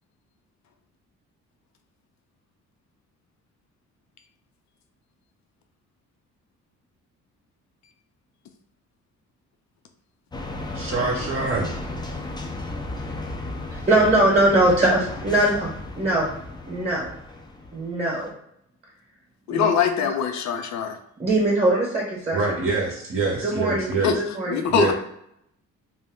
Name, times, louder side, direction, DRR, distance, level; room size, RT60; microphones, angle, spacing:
sound 1, 10.3-18.3, left 2 dB, 15° left, 0.5 m, -34 dB
voice 1, 10.7-11.7 22.3-24.2 24.7-24.9, right 3 dB, 45° right, -2 dB, 0.8 m, -25 dB
voice 2, 13.9-16.3 16.7-17.1 17.7-18.3 19.5-19.7 20.0-20.1 21.2-22.4 23.4-24.6, right 1 dB, 20° right, -4 dB, 1.0 m, -21 dB
voice 3, 19.5-21.0 24.0-24.2 24.5-24.9, left 8 dB, 65° left, 7 dB, 0.5 m, -22 dB
2.6 x 2.2 x 3.5 m, 0.74 s
cardioid pair, 90°, 30 cm